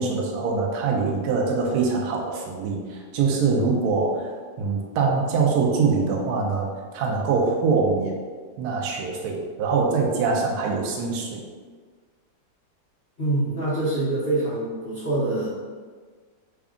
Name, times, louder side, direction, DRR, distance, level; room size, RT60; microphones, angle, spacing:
voice 1, 0.0-4.3 4.6-8.2 8.6-11.4, right 4 dB, 70° right, -1 dB, 0.9 m, -24 dB
voice 2, 13.2-15.5, right 2 dB, 50° left, -12 dB, 0.7 m, -25 dB
3.4 x 2.4 x 3.6 m, 1.5 s
omnidirectional pair, 2.1 m